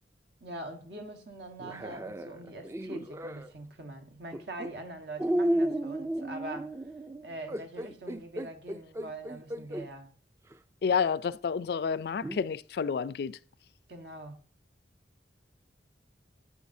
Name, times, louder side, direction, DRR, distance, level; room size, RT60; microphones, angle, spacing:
voice 1, 0.4-6.8 7.2-10.1 13.9-14.4, right 1 dB, 70° right, 1.4 m, -43 dB
sound 1, 1.6-3.5 4.3-4.7 5.2-9.9 10.5-10.6 12.2-12.4, right 1 dB, 15° right, 0.3 m, -33 dB
voice 2, 10.8-13.4, left 6 dB, 60° left, 0.3 m, -29 dB
8.6 x 8.1 x 2.7 m
head